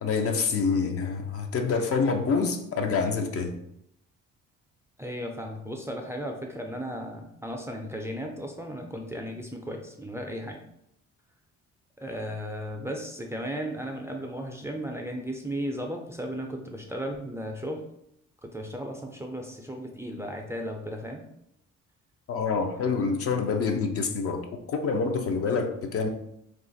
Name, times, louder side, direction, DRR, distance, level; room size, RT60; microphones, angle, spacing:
voice 1, 0.0-3.5 22.3-26.1, left 5 dB, 50° left, 5 dB, 0.5 m, -27 dB
voice 2, 5.0-10.6 12.0-17.8 18.4-21.2, equal, 10° right, 1 dB, 0.4 m, -35 dB
2.5 x 2.4 x 3.9 m, 0.77 s
cardioid pair, 90°, 30 cm